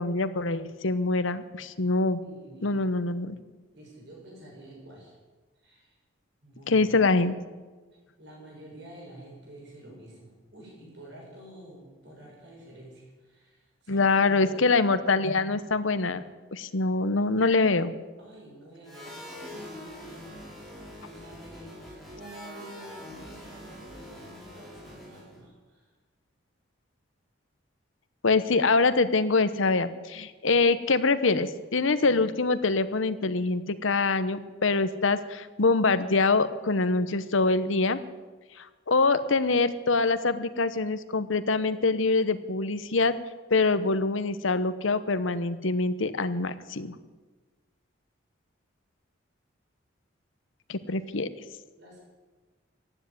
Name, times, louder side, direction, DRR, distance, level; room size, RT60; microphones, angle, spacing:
voice 1, 0.0-2.2 2.6-3.4 6.7-7.3 13.9-16.2 16.5-17.9 28.2-38.0 38.9-43.1 43.5-47.0 50.7-51.3, left 3 dB, 75° left, 13 dB, 0.9 m, -24 dB
voice 2, 2.2-2.9 3.7-5.2 5.6-5.9 6.4-6.9 8.2-14.7 16.5-16.7 18.2-20.5 20.8-25.9 51.8-52.0, right 1 dB, 55° right, -3 dB, 7.0 m, -48 dB
sound 1, 18.8-25.4, left 1 dB, ahead, 4.5 m, -44 dB
15.5 x 9.9 x 9.5 m, 1.3 s
head